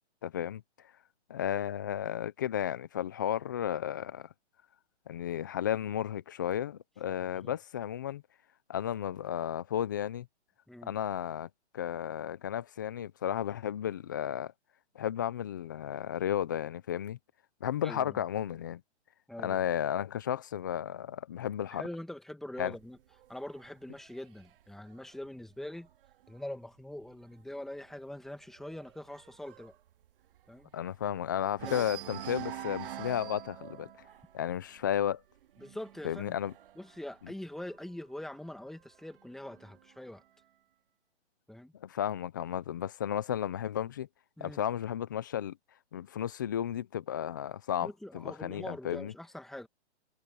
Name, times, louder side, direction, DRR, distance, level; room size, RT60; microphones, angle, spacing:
voice 1, 0.2-0.6 1.3-4.3 5.1-8.2 8.7-10.3 10.8-11.5 11.7-14.5 15.0-17.2 17.6-18.8 19.4-21.8 22.6-22.7 30.7-33.9 34.3-35.2 36.0-36.5 41.8-44.1 44.4-45.6 45.9-49.1, left 10 dB, 20° left, 0.4 m, -33 dB
voice 2, 17.8-18.2 19.3-19.6 21.7-23.0 23.3-25.9 26.3-29.7 30.5-30.7 31.6-31.9 35.6-36.4 36.8-40.2 41.5-41.7 44.4-44.6 47.8-49.7, left 1 dB, ahead, 2.0 m, -43 dB
sound 1, 22.8-26.4 26.8-27.1 27.4-27.5 27.9-31.2 31.5-38.1 38.9-39.9, right 11 dB, 50° right, 2.1 m, -46 dB
hypercardioid pair, 155°, 34 cm